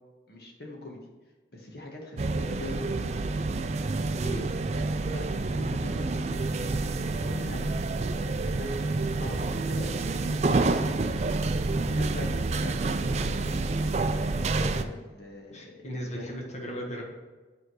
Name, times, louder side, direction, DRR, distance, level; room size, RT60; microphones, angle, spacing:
voice 1, 0.3-1.0 1.5-3.1 5.1-6.1 7.1-8.7 9.2-9.9 10.4-11.0 11.9-13.5 14.0-16.3, left 2 dB, 60° left, 0 dB, 1.5 m, -42 dB
sound 1, 2.2-14.8, right 3 dB, 40° right, 0.3 m, -28 dB
voice 2, 15.5-17.0, equal, 40° left, -2 dB, 1.5 m, -36 dB
9.0 x 3.8 x 4.7 m, 1.3 s
head